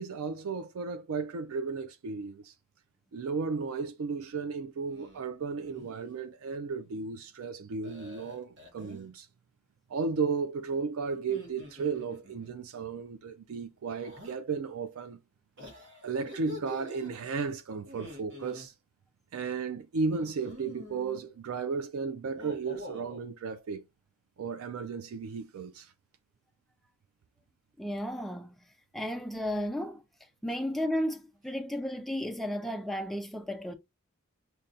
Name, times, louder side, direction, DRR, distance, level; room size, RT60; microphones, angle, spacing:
voice 1, 0.0-2.5 3.1-9.3 9.9-15.2 16.0-18.7 19.3-23.8 24.4-25.9, right 5 dB, 75° right, 0.4 m, -34 dB
sound 1, 4.9-5.2 5.6-6.1 7.8-9.1 11.1-12.5 14.0-14.4 15.6-17.1 17.8-18.7 20.1-21.2 22.2-23.2, left 1 dB, 55° right, 0.9 m, -46 dB
voice 2, 27.8-28.6 28.9-30.0 30.4-33.7, equal, ahead, 0.4 m, -33 dB
5.3 x 2.2 x 2.5 m
head